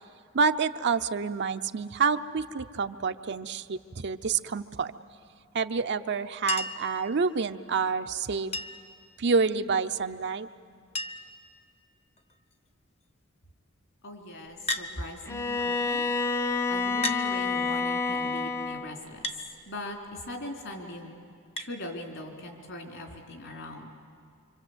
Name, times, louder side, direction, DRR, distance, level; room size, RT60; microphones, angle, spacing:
voice 1, 0.3-4.9 5.5-8.6 9.2-10.5, right 5 dB, 55° right, 9 dB, 0.7 m, -28 dB
Chink clink, 6.5-6.9 8.5-8.9 10.3-10.4 10.6-10.7 11.0-11.4 12.2-12.5 14.7-14.9 16.0-16.1 17.0-17.3 19.2-19.4 21.6-21.7 23.2-23.3, left 1 dB, 30° left, 0.9 m, -33 dB
voice 2, 14.0-16.1 16.7-19.3 19.7-21.2 21.6-23.9, left 1 dB, 65° left, 2 dB, 3.8 m, -40 dB
Bowed string instrument, 15.3-19.0, left 4 dB, 10° left, 0.6 m, -28 dB
26.0 x 25.5 x 8.1 m, 2.2 s
head